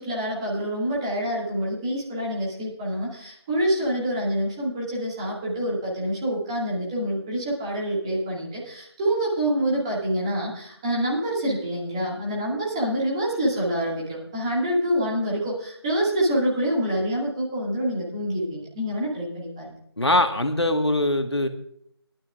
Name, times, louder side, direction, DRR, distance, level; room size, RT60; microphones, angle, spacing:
voice 1, 0.0-19.7, equal, 10° right, -5 dB, 2.1 m, -26 dB
voice 2, 20.0-21.5, left 1 dB, 80° left, 7 dB, 1.5 m, -22 dB
19.0 x 12.0 x 2.5 m, 0.68 s
figure-of-eight pair, 165°, 14 cm